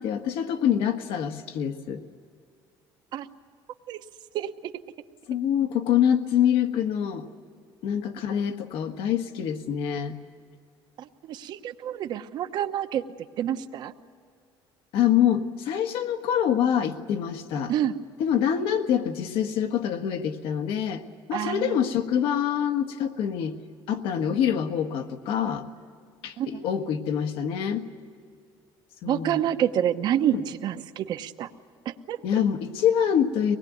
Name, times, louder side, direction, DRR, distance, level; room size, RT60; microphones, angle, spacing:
voice 1, 0.0-2.0 5.3-7.3 7.8-10.2 14.9-17.7 18.2-21.0 21.3-23.6 23.9-25.6 26.2-27.9 29.0-29.4 30.3-30.4 32.2-33.6, left 9 dB, 70° left, 7 dB, 1.5 m, -25 dB
voice 2, 4.3-4.7 11.0-13.0 13.4-13.9 17.7-18.0 21.3-21.8 26.4-26.6 29.0-31.5 31.8-32.2, right 10 dB, 50° right, 9 dB, 1.0 m, -28 dB
24.5 x 20.5 x 9.3 m, 2.2 s
cardioid pair, 175°, 10 cm